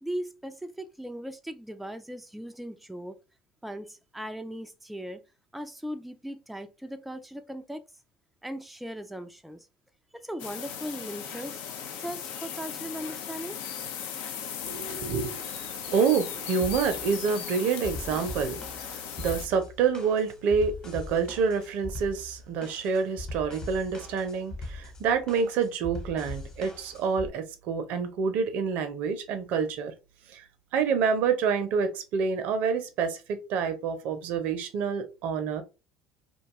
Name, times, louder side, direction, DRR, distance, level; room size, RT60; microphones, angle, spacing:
voice 1, 0.0-3.2 3.6-5.2 5.5-7.8 8.4-9.7 10.1-11.6 12.0-13.6, equal, ahead, 0.3 m, -38 dB
sound 1, 10.4-19.5, left 8 dB, 65° left, 0.4 m, -37 dB
voice 2, 14.6-29.9 30.3-30.4 30.7-35.6, right 6 dB, 65° right, 0.6 m, -28 dB
sound 2, 16.6-27.3, left 2 dB, 30° left, 1.1 m, -41 dB
2.5 x 2.3 x 2.9 m
hypercardioid pair, 80°, 3 cm